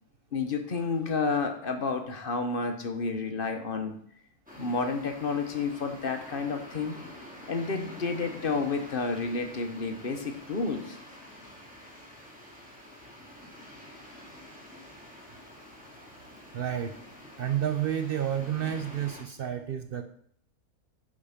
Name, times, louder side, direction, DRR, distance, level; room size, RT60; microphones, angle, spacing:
voice 1, 0.3-3.9 4.6-7.0 7.5-11.0, left 4 dB, 40° left, 5 dB, 1.0 m, -30 dB
sound 1, 4.5-19.2, left 1 dB, 5° right, 2.0 m, -47 dB
voice 2, 16.5-17.0 17.4-20.0, right 10 dB, 70° right, 8 dB, 0.5 m, -30 dB
8.4 x 5.1 x 5.7 m, 0.65 s
omnidirectional pair, 1.6 m